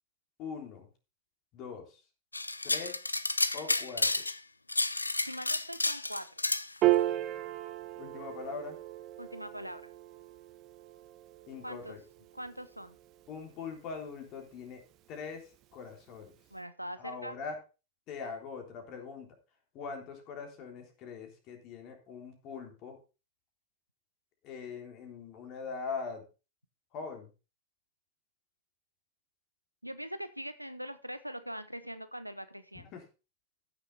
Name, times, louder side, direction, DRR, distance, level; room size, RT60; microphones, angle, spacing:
voice 1, 0.4-0.9 1.5-2.0 2.6-3.0 3.5-4.2 8.0-8.8 11.5-12.0 13.3-14.8 15.1-16.3 17.0-17.6 18.1-19.3 19.7-23.0 24.4-26.3 26.9-27.3 32.9-33.0, left 5 dB, 40° left, 3 dB, 3.6 m, -42 dB
sound 1, 2.3-4.4 4.7-6.7, left 2 dB, 80° left, 0.5 m, -31 dB
voice 2, 5.2-6.4 9.2-9.9 11.6-12.0 12.3-13.0 16.5-17.4 29.8-32.9, equal, 90° right, 13 dB, 0.8 m, -42 dB
Piano, 6.8-13.4, right 15 dB, 35° right, 1.2 m, -34 dB
14.5 x 6.8 x 4.1 m, 0.31 s
figure-of-eight pair, 90°, 0 cm